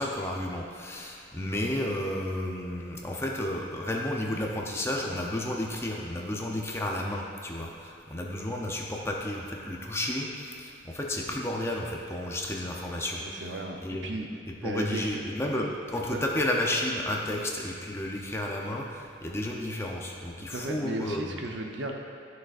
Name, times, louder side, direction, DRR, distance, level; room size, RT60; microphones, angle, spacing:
voice 1, 0.0-13.2 13.8-14.1 14.6-21.4, left 1 dB, 15° left, -1 dB, 0.6 m, -32 dB
voice 2, 13.1-14.3 14.6-15.2 15.5-15.6 16.1-16.2 20.4-21.9, right 1 dB, 70° right, 2 dB, 0.8 m, -35 dB
11.5 x 6.3 x 2.5 m, 2.5 s
head